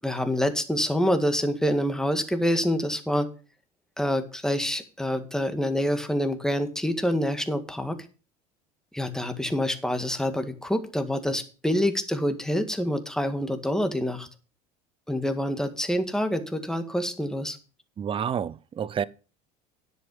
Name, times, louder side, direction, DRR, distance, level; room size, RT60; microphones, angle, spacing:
voice 1, 0.0-3.3 4.0-8.0 8.9-14.3 15.1-17.6, equal, 5° left, 1.9 m, -26 dB
voice 2, 18.0-19.0, right 8 dB, 25° right, 0.6 m, -29 dB
10.0 x 8.1 x 5.4 m
hypercardioid pair, 80°, 20 cm